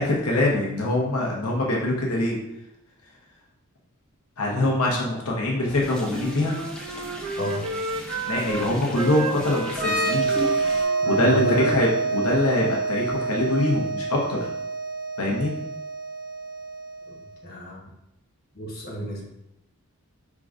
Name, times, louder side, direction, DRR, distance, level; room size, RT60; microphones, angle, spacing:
voice 1, 0.0-2.4 4.4-6.6 8.3-10.3 11.1-14.4 15.2-15.5, left 1 dB, 90° left, -2 dB, 0.9 m, -23 dB
sound 1, 5.6-10.8, equal, 5° left, 0.5 m, -38 dB
Wind instrument woodwind instrument, 6.0-8.7 8.9-12.6, right 2 dB, 80° right, 0.5 m, -33 dB
sound 2, 9.7-17.2, right 4 dB, 45° right, 1.1 m, -27 dB
voice 2, 11.2-11.7 17.4-17.8 18.6-19.2, equal, 45° left, -4 dB, 1.0 m, -30 dB
4.8 x 3.7 x 2.5 m, 0.85 s
head